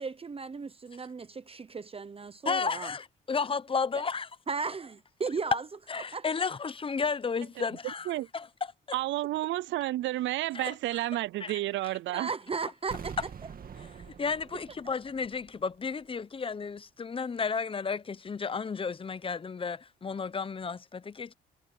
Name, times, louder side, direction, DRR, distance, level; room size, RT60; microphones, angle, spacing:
voice 1, 0.0-2.9 3.9-4.0 4.5-5.7 6.0-6.2 12.1-13.3 14.5-14.6, right 4 dB, 30° right, 1.0 m, -36 dB
voice 2, 2.5-4.3 5.9-8.5 8.9-9.0 10.5-10.7 11.4-11.5 14.1-21.3, left 5 dB, 25° left, 0.8 m, -33 dB
voice 3, 8.9-12.3, right 16 dB, 70° right, 0.4 m, -31 dB
sound 1, 12.9-15.8 16.0-16.1, right 7 dB, 45° right, 2.2 m, -45 dB
cardioid pair, 90°, 20 cm